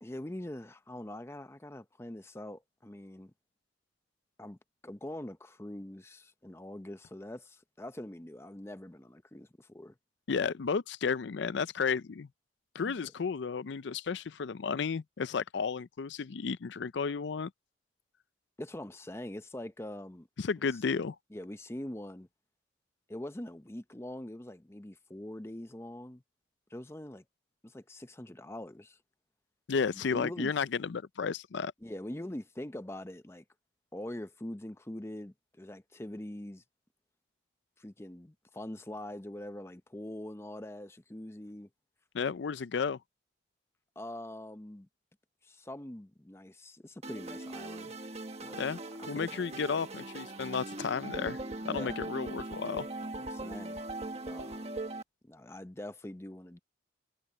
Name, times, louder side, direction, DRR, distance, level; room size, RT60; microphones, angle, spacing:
voice 1, 0.0-3.3 4.4-4.6 4.8-9.9 12.8-13.1 18.6-20.3 21.3-22.3 23.1-26.2 26.7-27.2 27.6-29.0 29.9-30.5 31.8-33.4 33.9-36.6 37.8-41.7 44.0-44.9 45.4-47.9 48.4-48.6 49.0-49.5 51.7-52.0 53.2-53.8 54.3-54.7 55.2-56.6, left 1 dB, 15° left, 0.6 m, -43 dB
voice 2, 10.3-12.3 12.7-17.5 20.4-21.2 29.7-31.7 42.1-43.0 48.6-48.8 49.1-51.4 51.6-52.9, left 5 dB, 65° left, 0.4 m, -33 dB
sound 1, 47.0-55.0, right 2 dB, 35° right, 1.4 m, -40 dB
head